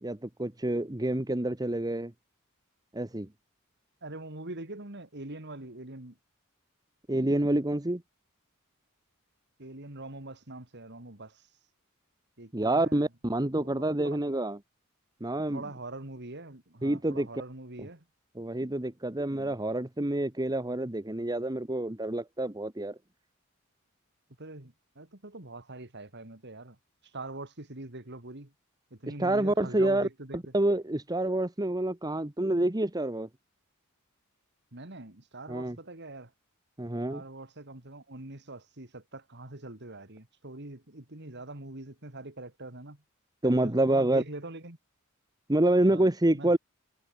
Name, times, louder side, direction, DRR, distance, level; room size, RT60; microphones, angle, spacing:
voice 1, 0.0-2.1 2.9-3.3 7.1-8.0 12.5-14.6 15.2-15.6 16.8-17.3 18.4-22.9 29.2-30.1 30.5-33.3 35.5-35.8 36.8-37.2 43.4-44.2 45.5-46.6, right 1 dB, 20° right, 1.2 m, -27 dB
voice 2, 4.0-6.2 9.6-11.5 12.4-13.0 13.4-14.2 15.5-18.1 19.3-19.6 24.4-26.8 27.0-28.5 28.9-30.5 34.7-36.3 37.1-43.0 43.4-44.8 45.9-46.6, right 2 dB, 55° right, 3.0 m, -43 dB
head